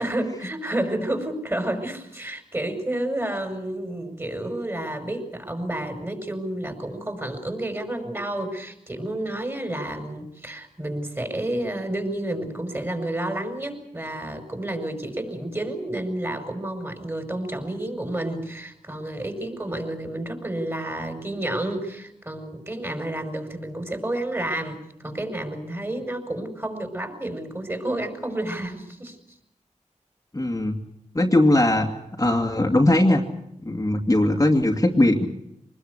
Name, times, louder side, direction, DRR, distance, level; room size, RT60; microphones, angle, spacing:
voice 1, 0.0-29.2, right 1 dB, 20° right, 6 dB, 5.4 m, -30 dB
voice 2, 30.3-30.8 31.1-31.9 32.2-33.2 33.6-35.3, left 1 dB, 25° left, 2 dB, 2.3 m, -19 dB
24.5 x 20.5 x 8.1 m, 0.80 s
wide cardioid pair, 70°, 13 cm